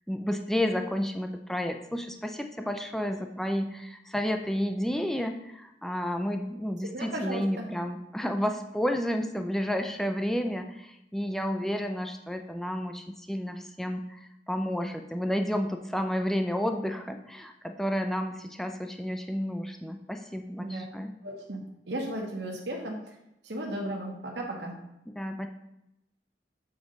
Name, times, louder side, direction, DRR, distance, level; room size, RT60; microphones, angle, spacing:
voice 1, 0.1-21.1 25.2-25.5, equal, ahead, 5 dB, 0.4 m, -31 dB
voice 2, 6.9-7.6 20.6-20.8 21.2-21.6 21.9-23.0 23.4-24.7, right 1 dB, 70° right, -1 dB, 1.0 m, -35 dB
7.0 x 3.9 x 5.1 m, 0.86 s
head